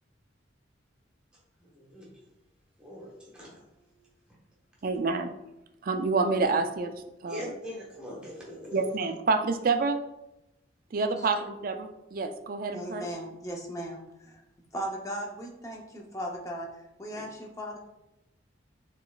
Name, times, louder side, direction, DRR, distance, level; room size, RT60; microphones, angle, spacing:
voice 1, 1.6-2.1 2.8-3.6 3.9-4.1 7.3-8.9 17.1-17.2, left 1 dB, 5° right, -5 dB, 1.2 m, -42 dB
voice 2, 4.8-5.3 5.8-7.5 8.7-10.0 10.9-13.0, right 4 dB, 45° right, 7 dB, 0.4 m, -28 dB
voice 3, 12.7-14.4 14.7-17.8, equal, 15° left, 0 dB, 0.6 m, -37 dB
6.9 x 3.0 x 2.3 m, 0.91 s
head